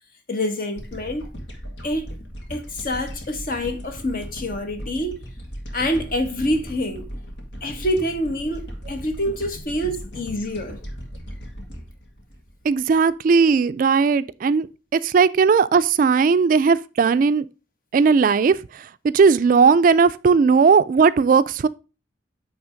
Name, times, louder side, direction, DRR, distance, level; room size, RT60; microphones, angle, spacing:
voice 1, 0.3-1.2 1.8-2.2 2.5-5.2 5.7-7.1 7.6-10.8, left 1 dB, 50° left, 1.2 m, -26 dB
sound 1, 0.8-13.2, equal, 80° left, 1.9 m, -37 dB
voice 2, 12.6-14.7 14.9-17.5 17.9-21.7, right 5 dB, 50° right, 0.3 m, -17 dB
8.8 x 3.4 x 5.0 m
head